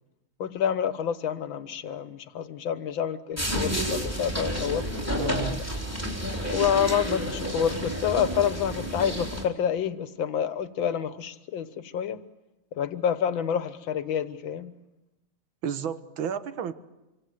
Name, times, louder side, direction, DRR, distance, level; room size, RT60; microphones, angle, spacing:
voice 1, 0.4-5.6 6.5-12.2 12.7-14.7, left 8 dB, 70° left, 12 dB, 1.9 m, -28 dB
sound 1, 3.4-9.5, equal, 5° right, 3.6 m, -30 dB
voice 2, 5.2-5.6 15.6-16.7, right 8 dB, 75° right, 11 dB, 2.0 m, -31 dB
27.0 x 24.5 x 7.9 m, 1.0 s
omnidirectional pair, 2.2 m